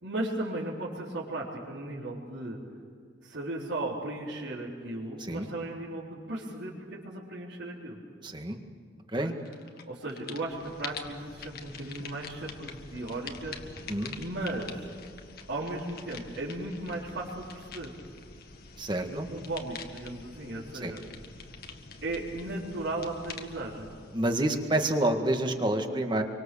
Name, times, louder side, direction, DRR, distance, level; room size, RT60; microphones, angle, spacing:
voice 1, 0.0-2.6 3.2-8.0 9.2-9.3 9.9-13.6 14.1-14.9 15.5-17.9 19.0-21.0 22.0-23.9, right 2 dB, 75° right, -9 dB, 4.2 m, -36 dB
voice 2, 8.2-8.6 9.1-9.4 13.9-14.2 18.8-19.3 20.8-20.9 24.1-26.2, right 1 dB, 25° right, 5 dB, 1.9 m, -28 dB
sound 1, 9.5-9.8 10.1-25.1, left 4 dB, 50° left, 1.8 m, -46 dB
26.5 x 24.5 x 7.1 m, 2.1 s
head